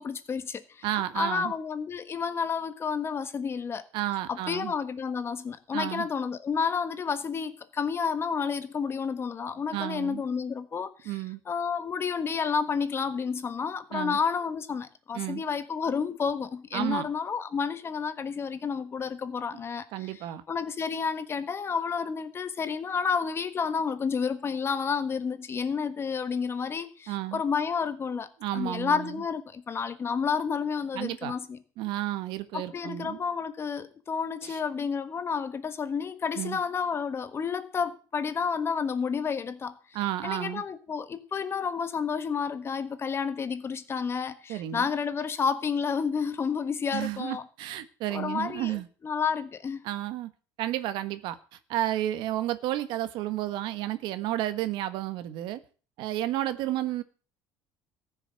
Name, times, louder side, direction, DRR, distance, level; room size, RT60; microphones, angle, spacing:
voice 1, 0.0-0.9 1.1-3.8 4.3-11.1 11.5-20.1 20.5-28.3 28.5-31.6 32.5-39.8 40.2-47.4 48.1-49.8, left 6 dB, 30° left, 1.4 m, -30 dB
voice 2, 0.8-1.5 3.9-4.7 5.7-6.1 9.7-10.2 11.0-11.4 13.9-14.2 15.1-15.4 16.7-17.1 19.9-20.4 27.1-27.4 28.4-29.2 30.9-31.3 31.8-33.2 34.4-34.6 36.4-36.6 39.9-40.6 44.5-44.9 46.9-48.9 49.8-50.3 50.6-55.6 56.0-57.0, right 14 dB, 70° right, 1.4 m, -32 dB
14.5 x 6.5 x 9.0 m
cardioid pair, 120°, 8 cm